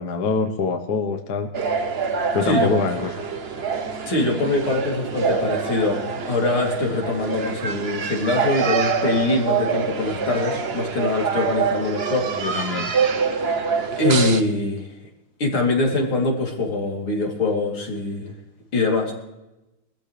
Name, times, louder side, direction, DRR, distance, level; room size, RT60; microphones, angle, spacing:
voice 1, 0.0-1.5 2.3-3.3 12.3-12.9, left 4 dB, 55° left, 5 dB, 1.6 m, -25 dB
sound 1, 1.5-14.4, right 5 dB, 45° right, 0.8 m, -25 dB
voice 2, 2.4-2.7 4.1-12.3 12.9-13.5 14.0-14.9 15.4-18.3 18.7-19.1, left 2 dB, 90° left, 0 dB, 4.0 m, -23 dB
22.5 x 14.0 x 3.3 m, 0.95 s
omnidirectional pair, 2.2 m